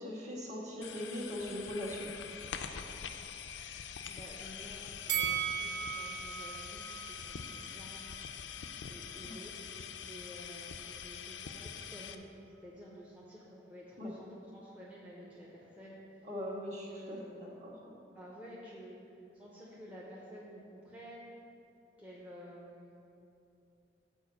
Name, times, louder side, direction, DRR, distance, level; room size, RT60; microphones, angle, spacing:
voice 1, 0.0-2.1 9.2-9.3 14.0-14.1 16.2-18.0, left 1 dB, 40° right, -5 dB, 1.6 m, -40 dB
sound 1, 0.8-12.2, left 7 dB, 85° left, 0.4 m, -44 dB
voice 2, 4.1-7.9 8.9-9.5 10.0-12.3 12.6-16.3 16.9-17.5 18.1-21.3 22.0-22.9, equal, 10° right, -6 dB, 0.7 m, -51 dB
Bell, 5.1-8.3 8.6-8.8, right 9 dB, 65° right, 0.4 m, -37 dB
7.1 x 4.7 x 6.9 m, 2.7 s
head